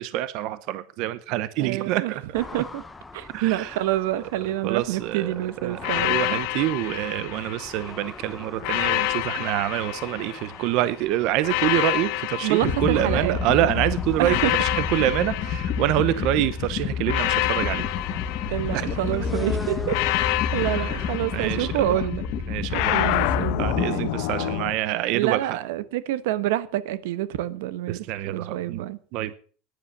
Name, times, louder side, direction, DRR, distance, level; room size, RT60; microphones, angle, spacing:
voice 1, 0.0-2.2 3.3-3.8 4.6-5.3 5.6-17.9 18.7-19.2 20.8-21.0 21.3-22.0 22.5-23.2 23.6-25.6 27.9-29.3, right 14 dB, 45° right, 0.7 m, -26 dB
voice 2, 1.6-2.8 3.1-6.3 12.4-13.4 14.2-14.5 18.5-20.0 20.5-22.3 22.9-24.1 24.4-24.5 25.1-29.0, right 14 dB, 85° right, 1.0 m, -27 dB
sound 1, 2.3-22.0, left 3 dB, 10° left, 0.7 m, -42 dB
sound 2, 5.8-8.0 8.6-10.8 11.4-13.6 14.2-16.4 17.1-19.2 19.9-22.0 22.7-24.7, left 17 dB, 55° left, 0.8 m, -28 dB
sound 3, 12.6-23.9, left 7 dB, 35° left, 1.4 m, -29 dB
11.5 x 10.0 x 7.0 m
cardioid pair, 175°, 0 cm